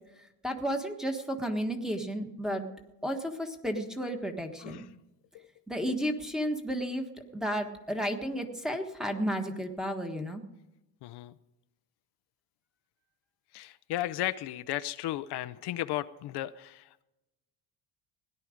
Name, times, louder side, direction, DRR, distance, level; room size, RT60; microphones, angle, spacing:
voice 1, 0.4-2.6 3.0-4.8 5.7-7.1 7.3-10.4, equal, ahead, 4 dB, 1.4 m, -32 dB
voice 2, 4.6-4.9 5.3-5.5 11.0-11.4 13.5-17.0, left 14 dB, 75° left, 12 dB, 0.7 m, -35 dB
17.5 x 11.0 x 5.1 m, 0.96 s
cardioid pair, 140°, 40 cm